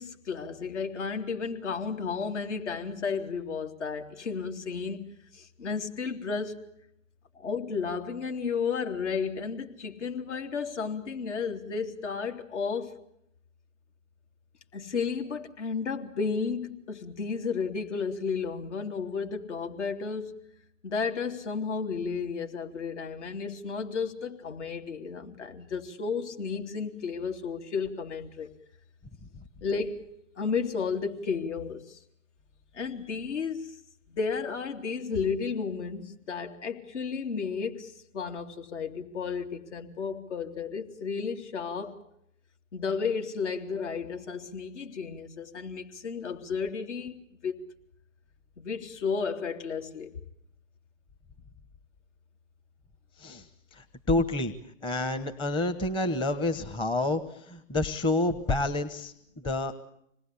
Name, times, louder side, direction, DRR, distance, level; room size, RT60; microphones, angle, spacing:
voice 1, 0.0-6.6 7.4-13.0 14.7-20.4 20.8-28.5 29.6-30.1 30.4-32.0 32.7-33.8 34.1-42.0 42.7-47.7 48.6-50.1, left 5 dB, 65° left, 3.4 m, -33 dB
voice 2, 53.8-54.5 54.8-57.2 57.5-59.1 59.4-59.7, left 2 dB, 15° left, 1.1 m, -28 dB
26.5 x 20.0 x 8.5 m
hypercardioid pair, 130°, 38 cm